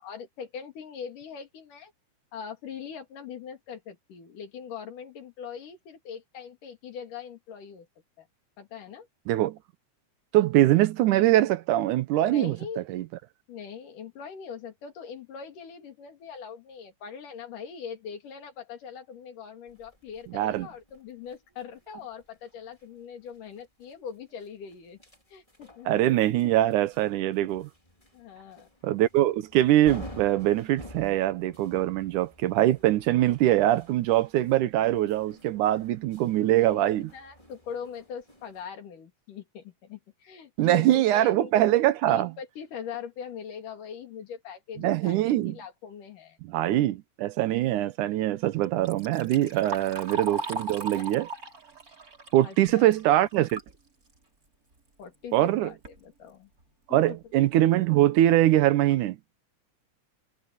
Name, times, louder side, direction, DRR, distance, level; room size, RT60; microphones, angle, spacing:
voice 1, 0.0-1.9 2.3-7.9 8.2-8.3 8.6-9.1 12.3-12.9 13.5-25.0 25.3-26.1 28.1-28.7 36.6-41.5 42.1-46.4 52.4-52.9 55.0-56.5 56.9-57.2, left 7 dB, 80° left, 4.2 m, -41 dB
voice 2, 9.3-9.6 10.3-13.1 20.3-20.7 25.9-27.7 28.8-37.1 40.6-42.3 44.8-45.6 46.4-51.3 52.3-53.6 55.3-55.7 56.9-59.2, right 14 dB, 80° right, 2.3 m, -23 dB
sound 1, 19.7-38.7, left 1 dB, 10° left, 4.8 m, -51 dB
Liquid, 48.6-53.7 54.1-54.2 55.1-55.2 55.6-56.0 56.6-56.7 57.2-57.3 57.7-58.0, right 3 dB, 25° right, 4.2 m, -38 dB
omnidirectional pair, 3.7 m